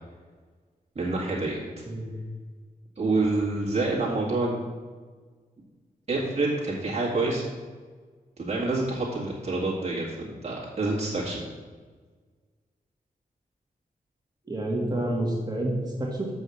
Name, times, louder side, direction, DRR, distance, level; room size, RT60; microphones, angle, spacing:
voice 1, 1.0-1.6 3.0-4.6 6.1-7.4 8.4-10.0 10.4-11.4, right 2 dB, 45° right, -6 dB, 2.1 m, -27 dB
voice 2, 14.5-16.3, right 1 dB, 25° right, -2 dB, 2.1 m, -28 dB
6.5 x 5.4 x 7.1 m, 1.5 s
wide cardioid pair, 75°, 16 cm